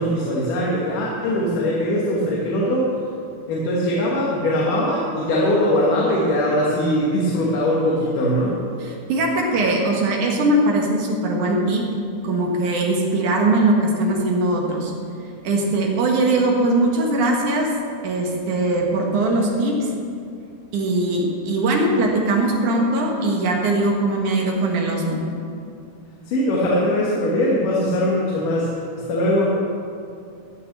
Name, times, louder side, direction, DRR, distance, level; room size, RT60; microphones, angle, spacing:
voice 1, 0.0-2.9 3.5-8.6 26.3-28.7 29.1-29.6, left 1 dB, 85° left, -4 dB, 3.0 m, -21 dB
voice 2, 9.1-11.8 12.2-14.9 15.4-17.7 18.0-19.9 20.7-25.2, right 2 dB, 70° right, -1 dB, 2.9 m, -20 dB
14.5 x 6.0 x 7.4 m, 2.5 s
omnidirectional pair, 3.7 m